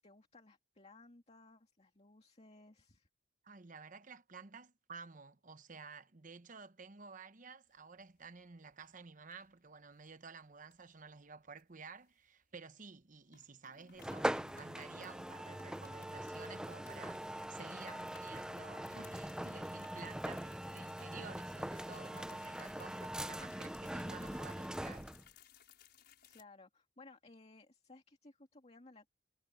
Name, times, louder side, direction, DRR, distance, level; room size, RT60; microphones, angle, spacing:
voice 1, 0.0-3.1 26.0-29.1, left 2 dB, 35° left, 2.3 m, -60 dB
voice 2, 3.4-25.1, right 5 dB, 45° right, 1.0 m, -53 dB
sound 1, 7.8-8.4 8.7-8.9 9.3-10.1 10.7-12.6 12.9-13.0 13.3-26.4, left 7 dB, 60° left, 6.6 m, -63 dB
sound 2, 14.0-25.3, right 1 dB, 5° right, 0.6 m, -42 dB
head